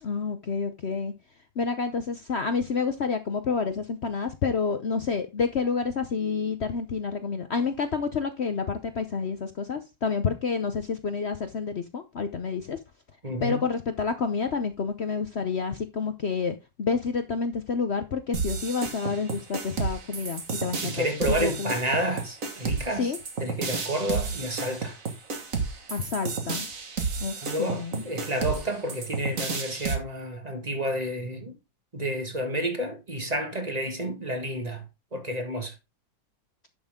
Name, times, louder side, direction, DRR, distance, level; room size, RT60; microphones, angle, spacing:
voice 1, 0.0-1.1 1.6-12.8 13.4-21.7 22.9-23.2 25.9-26.7 27.2-28.0, left 5 dB, 55° left, 0.7 m, -29 dB
voice 2, 13.2-13.6 20.8-23.1 23.4-25.0 27.4-31.6 31.9-34.8 35.1-35.7, right 1 dB, 20° right, 1.7 m, -30 dB
sound 1, 18.3-30.0, right 5 dB, 45° right, 1.9 m, -32 dB
11.0 x 6.3 x 3.6 m
omnidirectional pair, 2.0 m